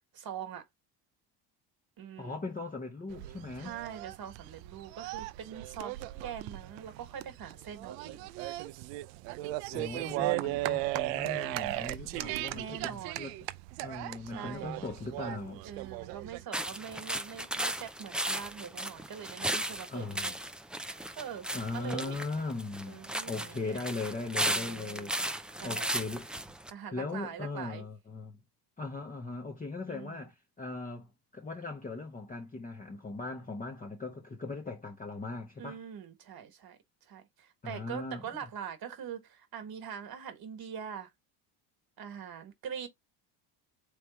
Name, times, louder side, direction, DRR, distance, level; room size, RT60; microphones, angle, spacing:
voice 1, 0.1-0.6 2.0-2.4 3.5-8.3 10.2-10.7 12.5-13.3 14.3-14.8 15.6-20.4 21.2-22.2 22.9-23.8 24.5-25.9 26.7-27.8 29.9-30.3 35.6-36.8 37.1-41.1 42.0-42.9, right 8 dB, 50° right, 1.6 m, -43 dB
voice 2, 2.2-3.8 9.7-13.4 13.8-15.6 19.9-20.3 21.5-25.1 25.6-26.3 26.9-28.4 28.8-35.8 37.6-38.2, left 3 dB, 15° left, 0.9 m, -39 dB
sound 1, 3.1-16.5, right 18 dB, 85° right, 0.6 m, -37 dB
sound 2, 16.5-26.7, right 1 dB, ahead, 0.5 m, -36 dB
3.4 x 3.2 x 4.3 m
supercardioid pair, 95°, 48 cm